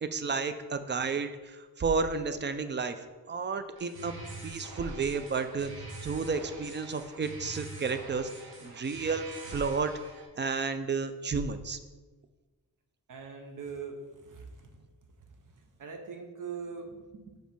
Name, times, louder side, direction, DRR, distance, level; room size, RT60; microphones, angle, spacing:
voice 1, 0.0-3.0 3.3-4.1 4.4-5.7 6.0-8.3 8.6-9.9 10.3-11.8, right 4 dB, 30° right, 9 dB, 0.4 m, -32 dB
sound 1, 3.8-10.3, right 3 dB, 85° right, 1.1 m, -45 dB
voice 2, 13.1-14.9 15.6-17.4, right 5 dB, 60° right, 4 dB, 0.7 m, -42 dB
5.1 x 4.5 x 5.2 m, 1.3 s
wide cardioid pair, 165°, 36 cm